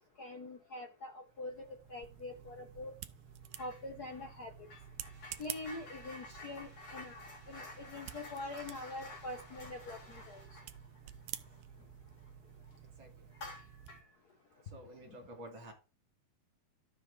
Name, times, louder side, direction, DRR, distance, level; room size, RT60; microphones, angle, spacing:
voice 1, 0.2-2.9 3.6-4.5 5.4-7.2 7.5-10.4, left 2 dB, 80° left, 3 dB, 0.8 m, -44 dB
sound 1, 1.3-14.0, right 11 dB, 85° right, 1.3 m, -51 dB
sound 2, 3.5-3.8 4.1-12.3 12.6-12.8 13.3-14.1, left 2 dB, 55° left, 5.1 m, -52 dB
sound 3, 5.1-10.5, right 3 dB, 25° right, 2.9 m, -63 dB
voice 2, 14.6-15.7, right 1 dB, 45° right, 3 dB, 2.7 m, -50 dB
12.0 x 7.4 x 3.3 m, 0.32 s
omnidirectional pair, 3.4 m